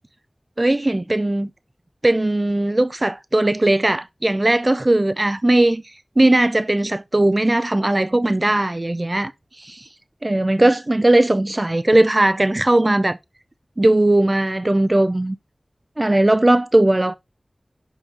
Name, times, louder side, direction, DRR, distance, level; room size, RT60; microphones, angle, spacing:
voice 1, 0.6-1.5 2.0-9.3 9.6-9.9 10.2-13.2 13.8-15.4 16.0-17.1, right 1 dB, 35° right, 0.5 m, -18 dB
7.3 x 5.1 x 4.1 m
wide cardioid pair, 50°, 0 cm